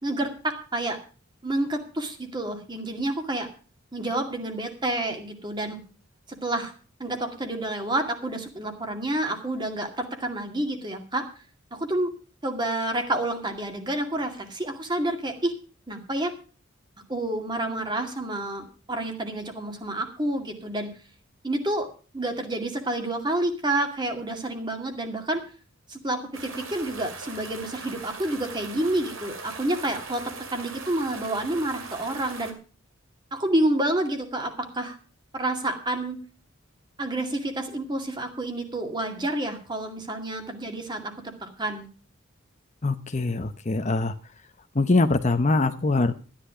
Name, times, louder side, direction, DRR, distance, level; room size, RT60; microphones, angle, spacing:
voice 1, 0.0-1.0 1.4-3.5 3.9-5.8 6.4-6.7 7.0-11.2 11.7-12.1 12.4-15.5 15.9-16.3 17.1-20.9 21.4-21.9 22.1-25.4 25.9-32.5 33.3-35.0 35.3-36.2 37.0-41.1 41.4-41.9, right 1 dB, 20° right, 5 dB, 2.2 m, -29 dB
sound 1, 26.3-32.5, right 4 dB, 80° right, 2.4 m, -40 dB
voice 2, 42.8-44.1 44.8-46.1, left 3 dB, 35° left, 9 dB, 0.8 m, -23 dB
13.0 x 10.0 x 4.9 m, 0.36 s
head